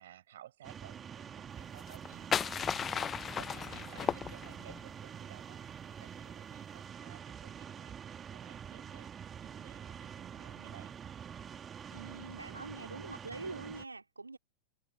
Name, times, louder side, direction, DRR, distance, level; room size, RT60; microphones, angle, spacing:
voice 1, 0.0-2.3 2.7-9.1 9.4-11.0, right 12 dB, 60° right, 6.4 m, -56 dB
sound 1, 0.6-13.8, right 8 dB, 25° right, 3.0 m, -46 dB
sound 2, 1.8-4.8, left 7 dB, 20° left, 0.6 m, -35 dB
voice 2, 11.9-14.4, right 3 dB, 80° right, 3.4 m, -44 dB
figure-of-eight pair, 90°, 0 cm